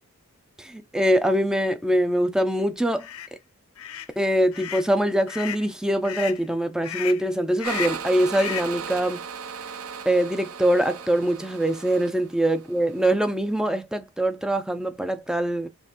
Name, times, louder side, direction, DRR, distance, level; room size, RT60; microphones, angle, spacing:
voice 1, 0.6-3.1 4.2-9.2 10.1-15.7, right 1 dB, 5° right, 0.3 m, -23 dB
sound 1, 3.0-3.3 3.8-4.1 4.5-4.9 5.3-5.7 6.0-6.4 6.8-7.3 7.6-8.0 8.3-8.8, left 10 dB, 80° left, 0.5 m, -34 dB
sound 2, 7.6-13.1, right 6 dB, 80° right, 0.5 m, -37 dB
5.3 x 2.4 x 2.8 m
head